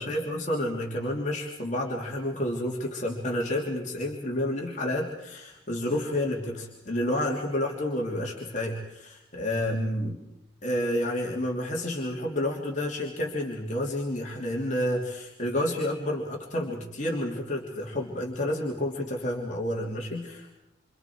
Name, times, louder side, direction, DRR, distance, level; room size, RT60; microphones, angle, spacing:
voice 1, 0.0-10.2 10.6-20.5, left 1 dB, 40° left, -2 dB, 3.1 m, -30 dB
28.5 x 27.0 x 4.7 m, 0.88 s
head